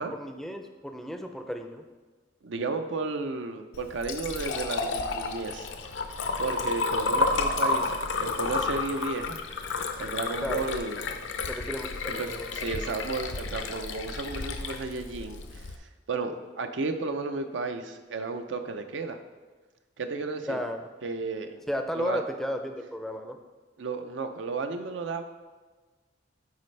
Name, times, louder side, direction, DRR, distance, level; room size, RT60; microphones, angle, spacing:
voice 1, 0.0-1.8 10.4-10.7 11.5-12.5 20.5-20.8 21.7-23.4, equal, ahead, 5 dB, 0.4 m, -34 dB
voice 2, 2.4-5.7 6.4-9.4 10.0-11.0 12.1-15.4 16.1-19.2 20.0-20.6 21.0-21.6 22.0-22.2 23.8-25.2, right 3 dB, 90° right, 7 dB, 0.5 m, -33 dB
Liquid, 3.7-15.8, left 3 dB, 85° left, 0.6 m, -31 dB
9.4 x 4.1 x 3.3 m, 1.3 s
head